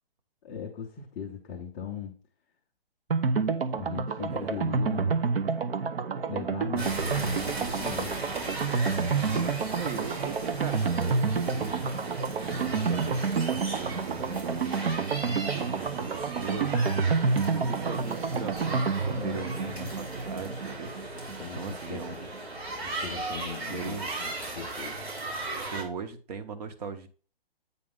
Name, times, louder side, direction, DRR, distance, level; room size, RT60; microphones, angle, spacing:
voice 1, 0.4-2.2 3.7-5.2 6.3-8.3 19.1-20.0 21.4-22.3 22.7-25.1, left 7 dB, 10° left, -2 dB, 0.5 m, -39 dB
sound 1, 3.1-21.7 22.0-22.1 22.3-22.4, right 5 dB, 70° right, 1.0 m, -29 dB
sound 2, 6.8-25.8, right 2 dB, 90° right, 3.9 m, -37 dB
voice 2, 9.1-11.9 12.1-21.3 21.5-22.1 23.7-24.1 25.7-27.1, right 5 dB, 40° right, 8 dB, 1.2 m, -39 dB
8.6 x 5.1 x 3.8 m, 0.38 s
hypercardioid pair, 145°, 30 cm